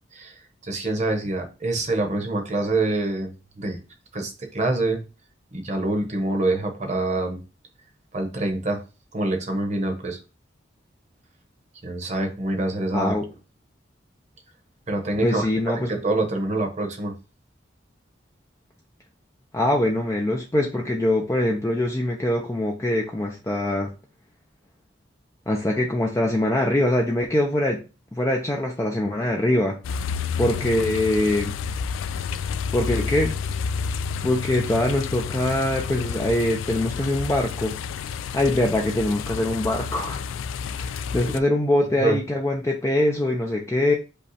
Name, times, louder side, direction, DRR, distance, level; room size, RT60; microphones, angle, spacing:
voice 1, 0.6-3.3 3.6-3.8 4.1-5.0 5.5-7.4 8.1-8.8 9.1-10.2 11.8-13.1 14.9-17.1 42.0-42.2, right 2 dB, 35° right, 4 dB, 0.9 m, -25 dB
voice 2, 12.9-13.3 15.2-15.9 19.5-23.9 25.5-27.8 28.1-29.8 30.4-31.6 32.7-33.4 34.2-37.7 38.1-40.2 40.8-43.9, left 1 dB, 15° left, 0 dB, 0.5 m, -23 dB
sound 1, 29.8-41.4, left 6 dB, 90° left, 0.3 m, -30 dB
5.3 x 2.3 x 4.1 m, 0.31 s
head